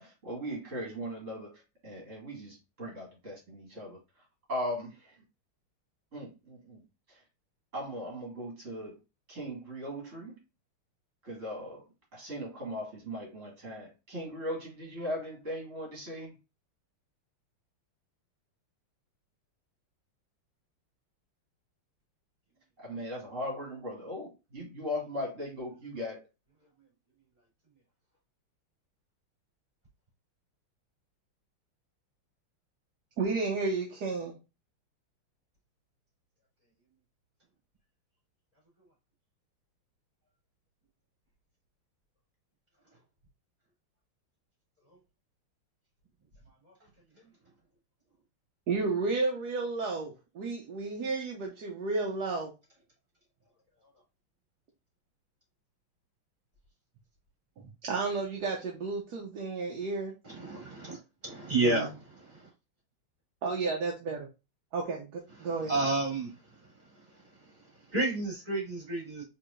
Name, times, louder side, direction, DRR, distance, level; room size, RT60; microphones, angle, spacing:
voice 1, 0.0-5.2 6.1-6.8 7.1-7.2 7.7-9.0 9.3-10.4 11.2-16.4 22.8-26.2, equal, 35° right, 2.3 m, -39 dB
voice 2, 33.2-34.3 48.7-52.5 57.6-60.1 61.6-61.9 63.4-64.3 64.7-65.8, right 3 dB, 65° right, 1.1 m, -32 dB
voice 3, 61.5-61.8 65.7-66.3 67.9-69.2, right 2 dB, 20° right, 2.8 m, -28 dB
4.6 x 3.6 x 2.5 m
omnidirectional pair, 2.3 m